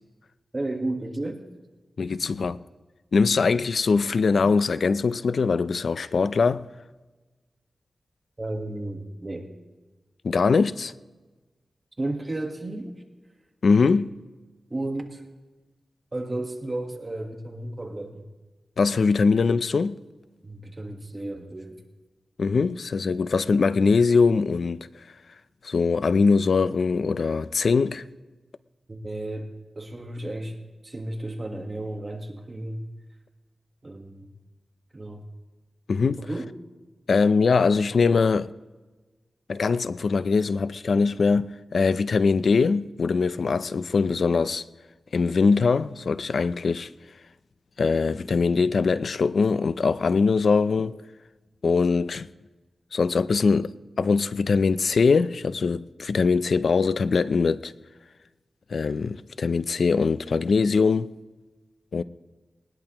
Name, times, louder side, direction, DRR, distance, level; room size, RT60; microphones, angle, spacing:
voice 1, 0.5-1.4 8.4-9.5 12.0-13.0 14.7-15.2 16.1-18.2 20.4-21.8 28.9-29.5 29.7-30.6 30.8-32.8 33.8-34.3 34.9-35.2 36.2-36.5, right 2 dB, 30° right, 1.4 m, -33 dB
voice 2, 2.0-2.6 3.1-6.7 10.2-10.9 13.6-14.1 18.8-20.0 22.4-25.0 25.6-28.0 35.9-36.3 37.1-38.5 39.5-44.6 45.1-46.9 47.8-51.0 51.6-52.3 52.9-57.7 58.7-61.1 61.9-62.0, left 4 dB, 70° left, 0.4 m, -22 dB
20.0 x 19.5 x 3.0 m
wide cardioid pair, 110°, 0 cm